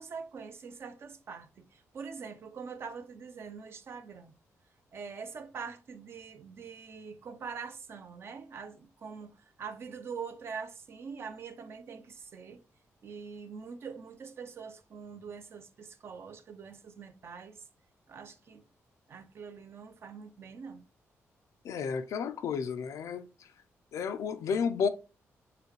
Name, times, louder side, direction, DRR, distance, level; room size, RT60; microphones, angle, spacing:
voice 1, 0.0-4.3 4.9-12.6 13.0-17.6 18.1-18.7 19.1-20.8, right 5 dB, 50° right, 0.6 m, -44 dB
voice 2, 21.6-23.3 23.9-24.9, left 6 dB, 80° left, 0.5 m, -31 dB
6.7 x 2.3 x 3.1 m
cardioid pair, 110°, 5 cm